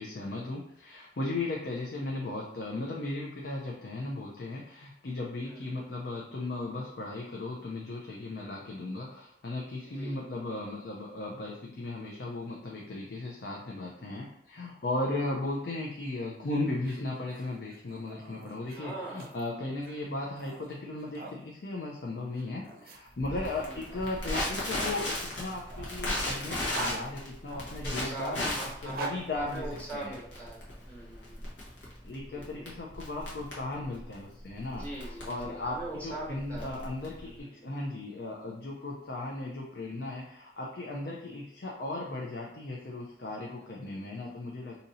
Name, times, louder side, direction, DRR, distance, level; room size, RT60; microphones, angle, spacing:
voice 1, 0.0-28.5 28.8-30.2 32.0-44.7, left 2 dB, 60° left, -2 dB, 0.5 m, -36 dB
sound 1, 16.7-21.4 22.3-24.5 25.4-27.8 28.6-30.2, right 2 dB, 55° right, 0.5 m, -43 dB
voice 2, 18.7-19.3 23.6-23.8 27.8-30.6 30.8-31.5 32.2-32.7 34.7-36.7 37.2-37.7 41.2-41.4 43.6-44.1, right 2 dB, 10° left, -5 dB, 1.1 m, -42 dB
Crackle, 23.2-37.4, left 1 dB, 80° left, 1.1 m, -36 dB
2.8 x 2.6 x 4.1 m, 0.73 s
head